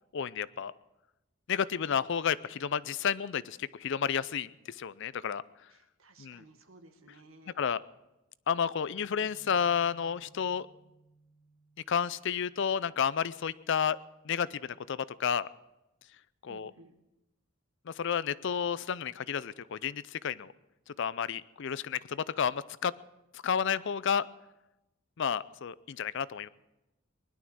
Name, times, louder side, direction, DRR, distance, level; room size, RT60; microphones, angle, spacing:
voice 1, 0.1-0.7 1.5-5.4 6.2-6.4 7.6-7.8 8.5-10.7 11.9-14.0 14.2-15.5 16.4-16.7 17.9-20.5 21.0-22.9 23.4-24.3 25.2-26.5, left 7 dB, 55° left, 18 dB, 0.4 m, -31 dB
voice 2, 5.7-7.5 16.4-16.9, right 2 dB, 70° right, 6 dB, 1.7 m, -57 dB
Bass guitar, 9.0-15.2, right 3 dB, 15° left, 6.3 m, -65 dB
20.0 x 11.5 x 6.2 m, 0.96 s
head